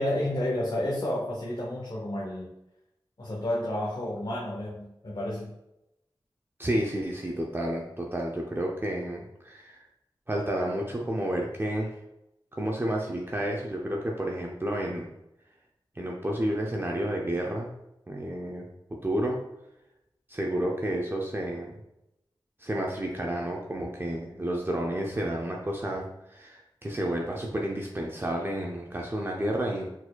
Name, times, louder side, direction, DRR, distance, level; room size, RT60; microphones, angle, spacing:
voice 1, 0.0-2.5 3.2-5.6, left 1 dB, 55° left, -5 dB, 0.8 m, -31 dB
voice 2, 6.6-9.8 10.3-11.9 12.5-15.1 16.0-17.7 18.1-18.7 19.0-19.4 20.3-21.7 22.6-29.9, right 1 dB, 25° right, -1 dB, 0.5 m, -31 dB
4.5 x 4.1 x 2.2 m, 0.88 s
wide cardioid pair, 80°, 9 cm